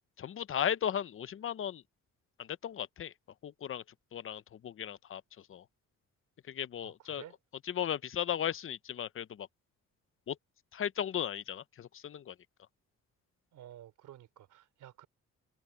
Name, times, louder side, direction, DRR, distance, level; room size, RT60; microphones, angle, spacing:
voice 1, 0.2-1.8 2.4-3.1 3.4-3.8 4.1-5.6 6.5-7.2 7.7-9.5 10.3-10.4 10.7-12.4, left 9 dB, 45° left, 0.7 m, -36 dB
voice 2, 6.8-7.4 13.5-15.1, right 12 dB, 80° right, 3.3 m, -52 dB
cardioid pair, 90°, 30 cm